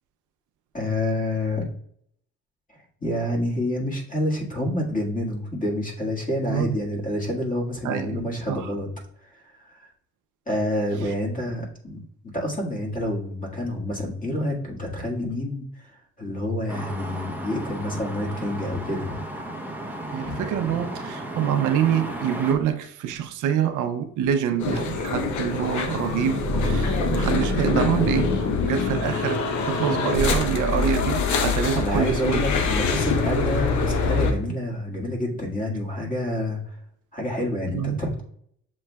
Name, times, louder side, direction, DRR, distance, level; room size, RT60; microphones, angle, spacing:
voice 1, 0.7-1.7 3.0-8.9 9.2-9.9 10.5-12.0 12.2-15.9 16.2-19.2 20.2-20.8 31.7-36.6 37.1-38.2, left 1 dB, 25° left, 1.7 m, -28 dB
voice 2, 7.8-8.7 20.1-29.4 29.7-32.4 34.5-34.6 37.7-38.0, right 9 dB, 80° right, 0.6 m, -26 dB
sound 1, 16.7-22.5, right 1 dB, 5° right, 0.7 m, -34 dB
sound 2, 24.6-34.3, left 4 dB, 75° left, 0.8 m, -24 dB
7.4 x 3.1 x 2.2 m
cardioid pair, 90°, 30 cm